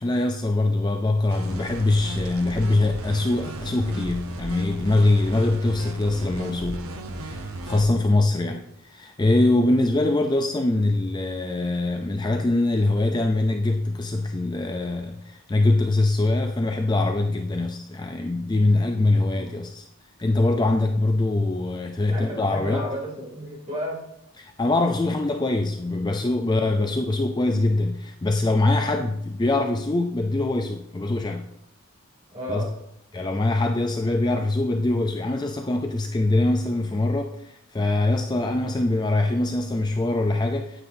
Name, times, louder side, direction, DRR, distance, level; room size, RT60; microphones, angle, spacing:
voice 1, 0.0-6.9 7.2-8.6 8.9-19.9 20.2-22.8 24.4-31.5 32.5-32.6 33.1-40.8, left 2 dB, 20° left, 4 dB, 0.4 m, -23 dB
sound 1, 1.3-7.9, right 1 dB, 80° right, 0.9 m, -35 dB
voice 2, 22.1-24.0 32.3-32.7, equal, 30° right, -3 dB, 2.6 m, -33 dB
9.5 x 8.7 x 2.7 m, 0.77 s
head